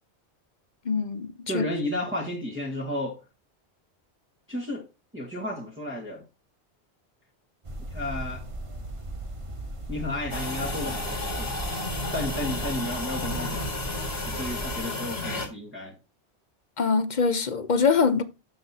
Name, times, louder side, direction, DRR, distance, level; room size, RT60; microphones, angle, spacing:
voice 1, 0.8-1.6 16.8-18.2, left 5 dB, 45° left, 0.9 m, -23 dB
voice 2, 1.5-3.2 4.5-4.9 5.1-6.2 7.9-8.4 9.9-11.5 12.1-13.7 14.2-15.9, left 1 dB, 10° right, 1.6 m, -32 dB
sound 1, 7.6-14.8, right 1 dB, 30° right, 0.9 m, -37 dB
sound 2, 10.3-15.5, left 2 dB, 65° left, 2.4 m, -32 dB
12.0 x 5.9 x 2.9 m
omnidirectional pair, 1.1 m